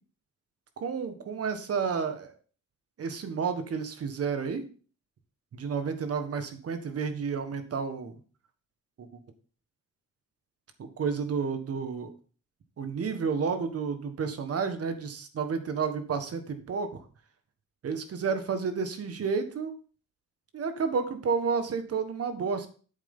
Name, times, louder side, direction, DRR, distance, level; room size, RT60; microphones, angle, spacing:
voice 1, 0.8-2.3 3.0-4.6 5.5-8.2 9.0-9.1 10.8-12.1 12.8-16.9 17.8-19.7 20.5-22.7, right 5 dB, 50° right, 8 dB, 1.5 m, -31 dB
8.5 x 7.3 x 3.7 m, 0.40 s
cardioid pair, 90°, 30 cm